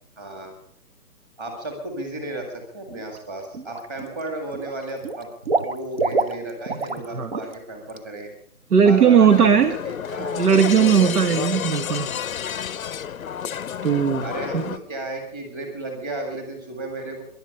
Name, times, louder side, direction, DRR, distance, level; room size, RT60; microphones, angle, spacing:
voice 1, 0.2-0.5 1.4-5.3 5.6-8.3 8.8-10.5 10.8-11.1 14.2-17.2, right 2 dB, 15° right, 4 dB, 1.9 m, -34 dB
Water / Liquid, 2.9-3.2 3.5-4.2 4.5-7.0 7.3-7.5 7.9-8.0, right 3 dB, 40° right, 0.9 m, -27 dB
voice 2, 8.7-9.8 10.3-12.1 13.8-14.3 14.5-14.7, right 7 dB, 75° right, 11 dB, 1.3 m, -17 dB
sound 1, 9.3-14.8, left 8 dB, 60° left, 0.6 m, -30 dB
20.5 x 11.5 x 5.4 m, 0.62 s
hypercardioid pair, 170°, 47 cm